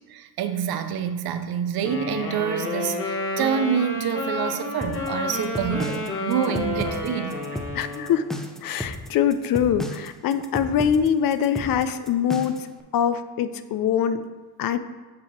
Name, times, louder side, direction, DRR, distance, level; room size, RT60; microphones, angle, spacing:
voice 1, 0.1-7.6, right 8 dB, 65° right, 10 dB, 0.6 m, -27 dB
Wind instrument woodwind instrument, 1.8-8.3, left 2 dB, 30° left, 1.2 m, -30 dB
sound 1, 4.8-12.7, left 1 dB, ahead, 0.3 m, -34 dB
voice 2, 7.7-8.2 8.6-12.7 12.9-14.2 14.6-14.8, left 8 dB, 60° left, 12 dB, 0.5 m, -23 dB
8.4 x 2.9 x 4.4 m, 1.3 s
cardioid pair, 105°, 40 cm